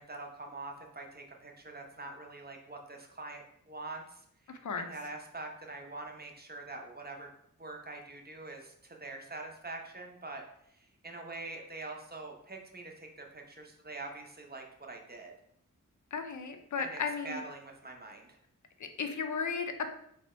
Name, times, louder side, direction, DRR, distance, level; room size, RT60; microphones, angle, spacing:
voice 1, 0.0-7.3 7.6-10.4 10.7-15.3 16.8-18.4, right 2 dB, 30° right, 2 dB, 0.6 m, -45 dB
voice 2, 4.5-4.9 16.1-17.4 18.8-19.9, left 5 dB, 60° left, 7 dB, 0.5 m, -35 dB
3.4 x 2.8 x 4.2 m, 0.71 s
wide cardioid pair, 105°, 33 cm